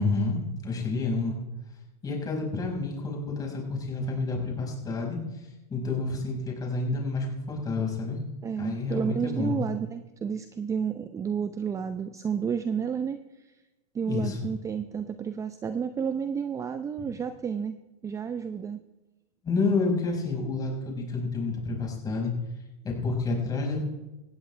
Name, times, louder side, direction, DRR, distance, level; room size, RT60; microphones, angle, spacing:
voice 1, 0.0-1.4 2.0-8.2 8.6-9.5 14.1-14.5 19.4-22.3 22.8-23.8, left 3 dB, 20° left, 0 dB, 5.4 m, -29 dB
voice 2, 8.4-13.6 13.9-17.8 18.0-18.8, right 7 dB, 15° right, 10 dB, 0.6 m, -31 dB
18.5 x 15.5 x 3.4 m, 1.0 s
hypercardioid pair, 130°, 20 cm